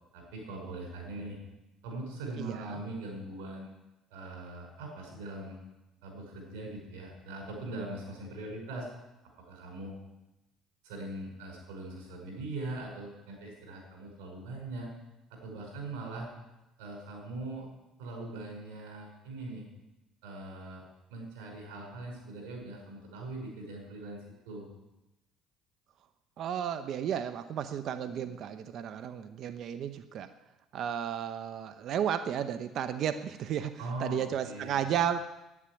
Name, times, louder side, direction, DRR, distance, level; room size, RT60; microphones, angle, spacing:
voice 1, 0.1-1.4 1.8-3.7 4.1-5.6 6.0-8.9 9.5-10.0 10.8-14.9 15.3-16.3 16.8-17.7 18.0-19.7 20.2-20.8 21.1-24.7 33.8-34.9, right 2 dB, 90° right, 1 dB, 5.6 m, -41 dB
voice 2, 2.4-2.8 26.4-30.3 30.7-35.2, right 9 dB, 60° right, 10 dB, 0.8 m, -33 dB
11.0 x 10.0 x 9.8 m, 0.97 s
supercardioid pair, 85°, 0 cm